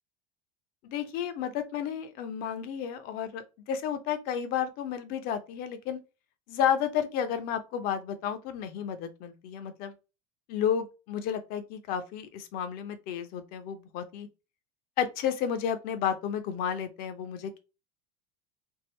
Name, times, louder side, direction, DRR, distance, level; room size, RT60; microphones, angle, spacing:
voice 1, 0.8-6.0 6.5-9.9 10.5-14.3 15.0-17.6, left 8 dB, 55° left, 0.7 m, -32 dB
3.6 x 2.1 x 3.2 m
hypercardioid pair, 85°, 18 cm